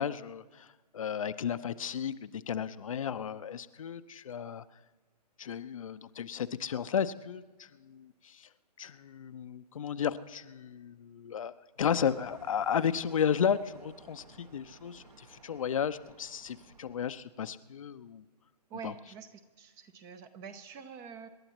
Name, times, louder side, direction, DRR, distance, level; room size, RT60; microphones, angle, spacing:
voice 1, 0.0-4.6 5.4-8.5 8.8-18.2 18.8-18.9, left 8 dB, 50° left, 12 dB, 0.6 m, -34 dB
sound 1, 11.8-17.1, right 4 dB, 65° right, 1.8 m, -57 dB
voice 2, 18.7-21.3, right 6 dB, 15° right, 11 dB, 0.6 m, -46 dB
27.0 x 11.5 x 3.0 m, 1.3 s
figure-of-eight pair, 140°, 21 cm